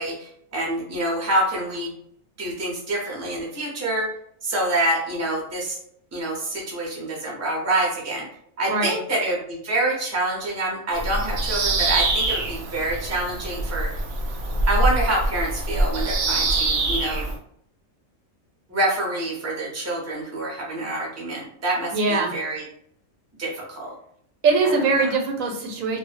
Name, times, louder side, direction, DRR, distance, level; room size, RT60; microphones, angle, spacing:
voice 1, 0.0-1.9 2.4-4.1 4.4-5.8 6.1-8.2 8.6-13.9 14.7-17.3 18.7-22.6 23.4-23.9, right 1 dB, 15° right, -3 dB, 0.6 m, -26 dB
Bird vocalization bird call bird song, 10.9-17.4, right 2 dB, 65° right, 0.7 m, -24 dB
voice 2, 21.9-22.3 24.4-26.0, right 3 dB, 85° right, 3 dB, 1.0 m, -22 dB
2.3 x 2.1 x 3.3 m, 0.68 s
omnidirectional pair, 1.4 m